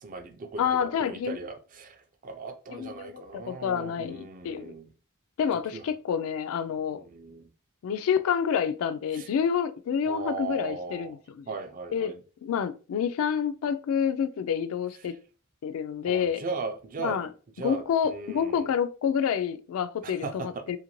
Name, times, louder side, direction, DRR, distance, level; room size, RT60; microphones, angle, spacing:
voice 1, 0.0-4.9 5.7-5.8 6.9-7.5 9.1-9.3 10.1-11.1 11.5-12.2 16.1-17.3 17.6-18.7 20.0-20.8, right 4 dB, 40° right, 0.4 m, -38 dB
voice 2, 0.6-1.4 2.7-4.8 5.4-7.0 7.8-11.5 11.9-12.1 12.4-15.2 15.6-16.4 17.0-17.3 17.6-20.8, left 7 dB, 65° left, 0.3 m, -28 dB
2.8 x 2.5 x 3.0 m
head